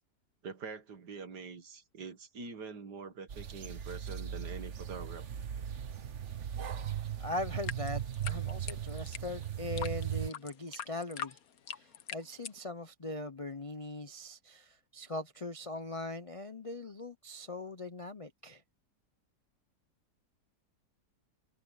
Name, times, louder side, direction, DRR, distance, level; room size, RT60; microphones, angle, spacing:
voice 1, 0.4-5.3, right 5 dB, 80° right, 2.4 m, -45 dB
sound 1, 3.3-10.3, right 10 dB, 50° right, 1.3 m, -38 dB
voice 2, 7.2-11.4 11.7-18.6, left 2 dB, 40° left, 0.4 m, -41 dB
sound 2, 7.4-12.6, left 8 dB, 60° left, 1.5 m, -42 dB
omnidirectional pair, 1.8 m